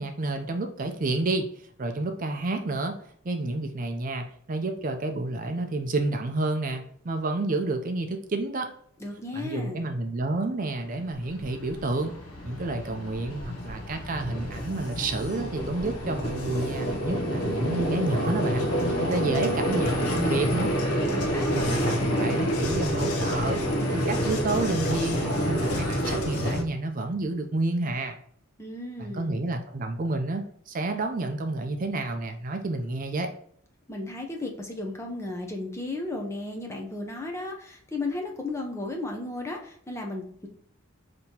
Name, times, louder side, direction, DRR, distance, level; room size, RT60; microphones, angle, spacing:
voice 1, 0.0-3.0 3.2-8.7 9.3-12.1 12.4-18.7 19.0-20.7 21.5-23.6 23.9-28.2 29.0-33.3, right 2 dB, 40° right, 5 dB, 0.4 m, -30 dB
voice 2, 9.0-9.9 21.1-22.0 28.6-29.4 33.9-40.5, left 2 dB, 10° left, 1 dB, 0.6 m, -34 dB
Vehicle, 11.0-26.6, equal, 85° left, 0.7 m, -28 dB
5.3 x 2.9 x 2.8 m, 0.64 s
head